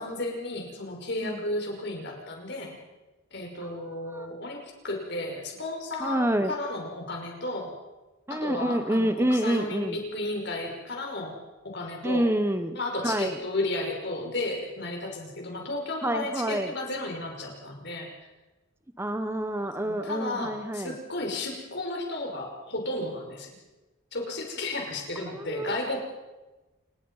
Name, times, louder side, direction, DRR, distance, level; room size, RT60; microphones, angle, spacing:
voice 1, 0.0-2.8 3.3-7.7 8.3-11.3 11.6-12.3 12.8-18.1 19.8-23.5 24.1-26.0, left 2 dB, 55° left, 1 dB, 5.7 m, -33 dB
voice 2, 3.6-4.3 6.0-6.5 8.3-10.0 12.0-12.8 13.0-13.4 16.0-16.7 19.0-21.0 25.2-25.8, right 1 dB, 10° right, 9 dB, 0.9 m, -28 dB
29.0 x 19.5 x 5.6 m, 1.1 s
head